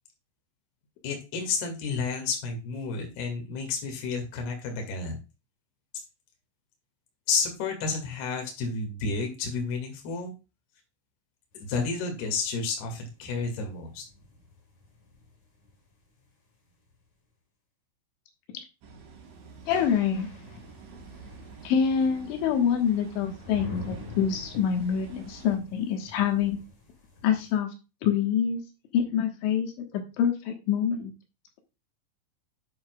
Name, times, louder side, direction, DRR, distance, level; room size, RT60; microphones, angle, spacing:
voice 1, 1.0-5.2 7.3-10.3 11.6-14.0, left 4 dB, 60° left, 2 dB, 3.9 m, -31 dB
sound 1, 11.5-17.0 19.5-27.6, left 2 dB, 45° left, 3.3 m, -48 dB
sound 2, 18.8-25.6, right 3 dB, 70° right, 3.7 m, -48 dB
voice 2, 19.7-20.3 21.6-26.6 27.2-27.7 28.0-28.6 28.9-31.1, left 8 dB, 80° left, 4 dB, 3.7 m, -26 dB
9.5 x 8.6 x 2.4 m, 0.29 s
omnidirectional pair, 5.4 m